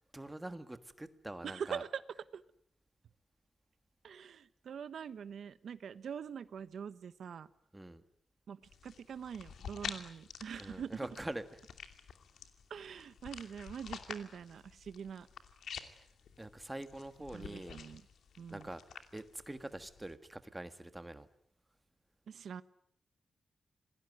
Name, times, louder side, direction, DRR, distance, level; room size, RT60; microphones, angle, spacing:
voice 1, 0.1-1.8 7.7-8.0 10.6-11.6 15.8-16.0 16.4-17.8 18.5-18.8 19.1-21.3, right 1 dB, 10° right, 10 dB, 1.5 m, -44 dB
voice 2, 1.4-2.0 2.3-2.4 4.0-7.5 8.5-11.0 12.7-15.3 17.3-18.0 18.4-18.7 22.3-22.6, right 7 dB, 65° right, 14 dB, 1.1 m, -44 dB
sound 1, 8.6-20.1, left 7 dB, 75° left, 2.6 m, -49 dB
27.5 x 20.5 x 9.5 m, 0.68 s
wide cardioid pair, 175°, 0 cm